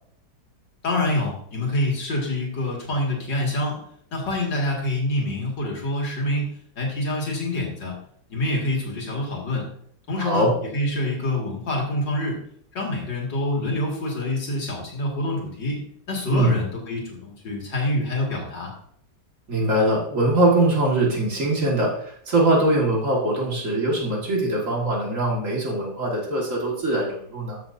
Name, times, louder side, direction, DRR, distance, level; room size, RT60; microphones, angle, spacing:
voice 1, 0.8-3.8 4.1-6.5 6.7-7.9 8.3-9.7 10.1-10.4 10.7-12.4 12.7-15.8 16.1-18.7, left 1 dB, 75° left, -2 dB, 2.9 m, -26 dB
voice 2, 10.2-10.5 16.3-16.6 19.5-27.6, right 1 dB, 45° right, -2 dB, 2.2 m, -22 dB
13.5 x 6.8 x 2.7 m, 0.65 s
omnidirectional pair, 1.9 m